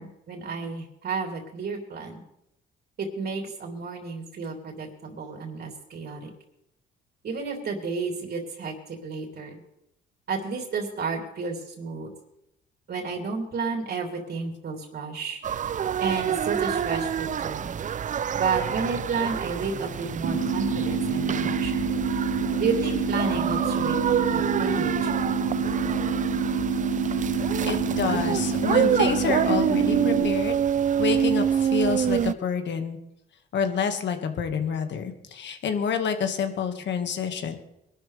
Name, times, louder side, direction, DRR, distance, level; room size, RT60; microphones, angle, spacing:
voice 1, 0.0-2.2 3.0-6.3 7.2-9.6 10.3-12.1 12.9-15.4 16.0-17.7 18.3-21.9 22.6-24.0 24.3-25.1, right 4 dB, 55° right, 1 dB, 3.2 m, -31 dB
sound 1, 15.4-32.3, right 8 dB, 40° right, 0.5 m, -27 dB
sound 2, 20.2-30.2, right 5 dB, 90° right, 1.5 m, -27 dB
voice 2, 27.6-30.6 31.0-33.0 33.5-37.6, left 6 dB, 65° left, 6 dB, 1.8 m, -28 dB
22.0 x 12.5 x 3.4 m, 0.82 s
cardioid pair, 90°, 20 cm